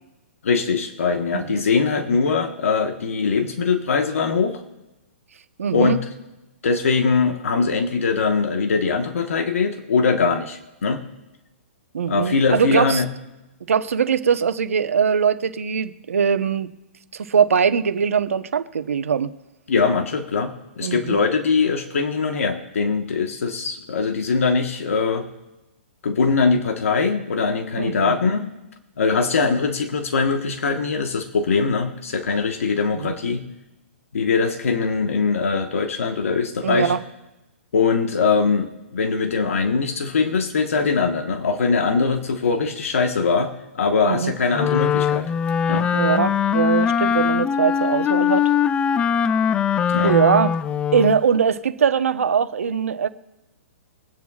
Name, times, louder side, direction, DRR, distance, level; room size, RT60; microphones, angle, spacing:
voice 1, 0.4-4.6 5.7-6.0 6.6-11.0 12.1-13.1 19.7-25.3 26.0-28.5 29.0-33.4 34.1-36.9 37.7-45.3 45.7-45.9 49.9-50.1, left 5 dB, 75° left, 5 dB, 1.4 m, -21 dB
voice 2, 1.3-1.6 5.6-6.0 11.9-13.0 13.7-16.7 17.1-19.3 20.8-21.2 27.8-28.1 32.9-33.2 36.6-37.0 44.0-44.3 45.9-48.5 50.0-50.6 50.9-53.1, right 7 dB, 80° right, 10 dB, 1.1 m, -21 dB
Wind instrument woodwind instrument, 44.5-51.2, left 7 dB, 15° left, 0.3 m, -21 dB
23.5 x 9.3 x 2.4 m, 0.98 s
hypercardioid pair, 135°, 7 cm